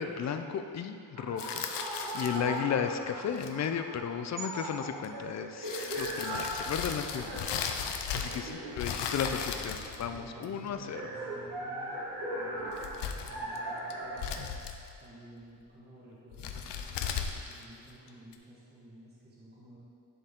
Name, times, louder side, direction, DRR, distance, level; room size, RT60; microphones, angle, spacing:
voice 1, 0.0-1.7 2.1-7.4 8.1-11.0, left 7 dB, 40° left, 7 dB, 0.5 m, -34 dB
sound 1, 1.1-14.4, right 1 dB, 60° right, 1.5 m, -40 dB
sound 2, 1.4-2.6 3.3-3.7 5.0-5.1 5.6-8.5 8.8-10.7 12.6-13.6 13.9-15.0 16.3-18.3, left 7 dB, 80° left, 0.6 m, -37 dB
voice 2, 8.1-8.5 9.3-9.6 10.1-12.0 12.3-14.3 15.0-19.8, right 1 dB, 25° right, -7 dB, 1.4 m, -53 dB
11.0 x 4.5 x 3.7 m, 2.4 s
wide cardioid pair, 140°, 41 cm